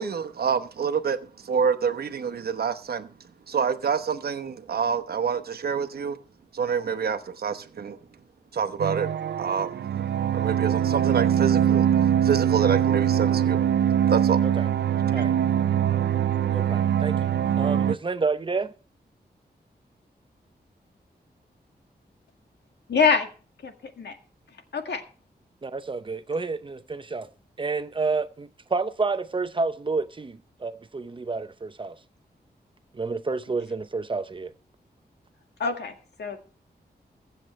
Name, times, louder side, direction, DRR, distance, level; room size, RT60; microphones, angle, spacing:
voice 1, 0.0-3.1 3.5-6.2 6.5-8.0 8.5-9.1 9.4-10.1 10.3-11.9 12.2-14.4 15.2-15.3, right 6 dB, 65° right, 1.0 m, -27 dB
sound 1, 8.8-18.0, right 9 dB, 85° right, 0.5 m, -23 dB
voice 2, 16.5-17.3 17.6-18.7 25.6-27.3 27.6-32.0 32.9-34.5, right 4 dB, 30° right, 0.7 m, -29 dB
voice 3, 22.9-23.3 23.6-24.2 24.7-25.0 35.6-36.4, left 5 dB, 85° left, 1.9 m, -25 dB
23.0 x 7.8 x 3.2 m
wide cardioid pair, 145°, 17 cm